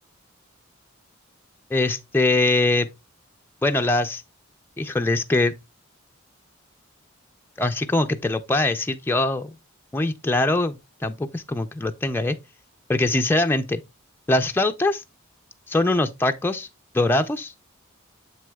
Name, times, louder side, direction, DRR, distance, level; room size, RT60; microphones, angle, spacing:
voice 1, 1.7-2.9 3.6-4.2 4.8-5.5 7.6-9.5 9.9-12.4 12.9-13.8 14.3-15.0 15.7-16.7 16.9-17.5, left 2 dB, 10° left, 0.3 m, -22 dB
7.6 x 6.1 x 2.2 m
head